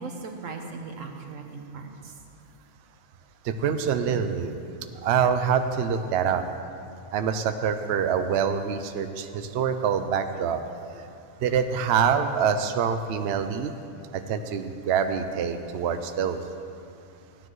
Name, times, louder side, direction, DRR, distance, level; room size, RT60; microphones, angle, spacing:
voice 1, 0.0-2.1 4.1-4.2, right 4 dB, 85° right, 3 dB, 1.4 m, -38 dB
voice 2, 3.4-4.6 5.0-6.4 7.1-10.6 10.9-11.0 11.4-13.7 14.1-16.4, right 7 dB, 65° right, 8 dB, 0.8 m, -25 dB
15.0 x 9.8 x 3.1 m, 2.6 s
omnidirectional pair, 1.3 m